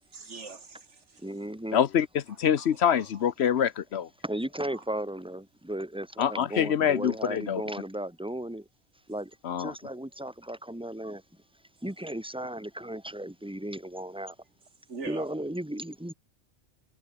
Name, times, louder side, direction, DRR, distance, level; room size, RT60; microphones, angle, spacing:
voice 1, 0.1-1.2 2.6-3.2 4.7-4.8 14.9-15.2, right 4 dB, 85° right, 2.5 m, -43 dB
voice 2, 1.2-1.8 4.2-8.6 9.1-9.3 9.6-11.2 11.8-14.3 15.0-16.1, right 1 dB, 5° right, 2.1 m, -35 dB
voice 3, 1.7-4.1 6.2-7.6 9.4-9.7, left 9 dB, 70° left, 1.0 m, -25 dB
omnidirectional pair, 1.2 m